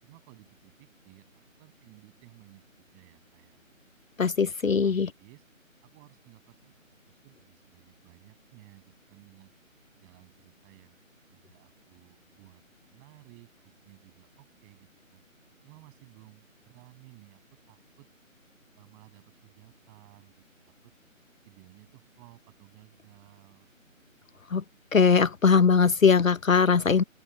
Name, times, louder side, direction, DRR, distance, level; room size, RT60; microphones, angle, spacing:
voice 1, 0.0-3.7 4.7-5.4 5.8-9.5 10.0-11.0 11.3-12.6 12.9-15.2 15.6-18.1 18.8-21.0 21.4-23.7, right 31 dB, 15° right, 7.4 m, -56 dB
voice 2, 4.2-5.1 24.5-24.6 24.9-27.0, left 5 dB, 75° left, 0.8 m, -21 dB
open air
figure-of-eight pair, 155°, 41 cm